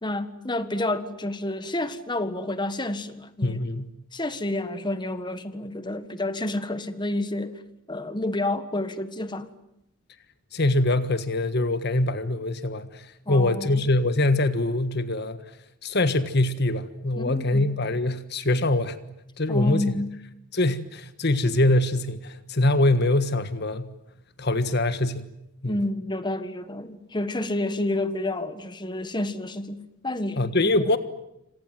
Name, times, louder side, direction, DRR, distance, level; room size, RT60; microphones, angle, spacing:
voice 1, 0.0-3.6 4.1-7.6 7.9-9.5 13.3-13.8 17.2-17.7 19.5-20.1 25.6-30.5, left 1 dB, 20° left, 1.6 m, -29 dB
voice 2, 3.4-3.9 10.5-15.4 15.8-19.0 19.4-19.9 20.5-23.9 24.4-25.3 25.6-25.8 30.4-31.0, left 2 dB, 55° left, 1.5 m, -23 dB
28.0 x 26.5 x 7.8 m
head